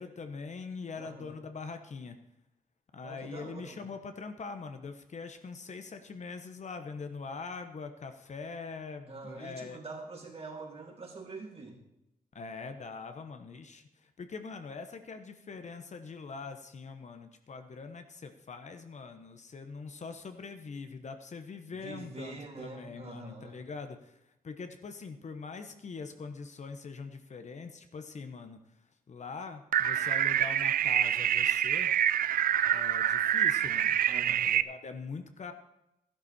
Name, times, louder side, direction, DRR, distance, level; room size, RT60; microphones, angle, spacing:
voice 1, 0.0-2.2 2.9-9.8 12.3-24.2 24.4-28.6 29.1-31.9 32.7-34.0 34.4-35.5, left 4 dB, 55° left, 7 dB, 1.1 m, -43 dB
voice 2, 1.0-1.4 3.0-3.8 9.1-11.8 21.7-23.7 34.1-34.5, right 3 dB, 45° right, 0 dB, 3.0 m, -45 dB
sound 1, 29.7-34.6, right 10 dB, 85° right, 0.4 m, -26 dB
13.5 x 11.5 x 4.4 m, 0.86 s
wide cardioid pair, 95°, 14 cm